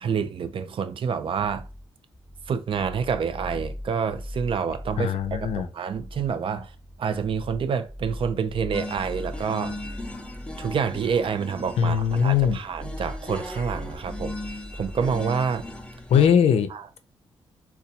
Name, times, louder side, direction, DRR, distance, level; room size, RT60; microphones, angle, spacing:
voice 1, 0.0-1.7 2.5-6.7 7.0-9.8 10.6-14.3 14.7-15.7 16.7-17.0, right 6 dB, 55° right, 0.4 m, -28 dB
sound 1, 1.4-16.4, left 1 dB, 20° right, 1.2 m, -40 dB
voice 2, 5.0-5.7 11.8-12.6 16.1-16.7, left 8 dB, 70° left, 0.5 m, -20 dB
sound 2, 8.7-16.3, left 1 dB, 10° left, 0.7 m, -38 dB
2.6 x 2.3 x 4.1 m
supercardioid pair, 55°, 11 cm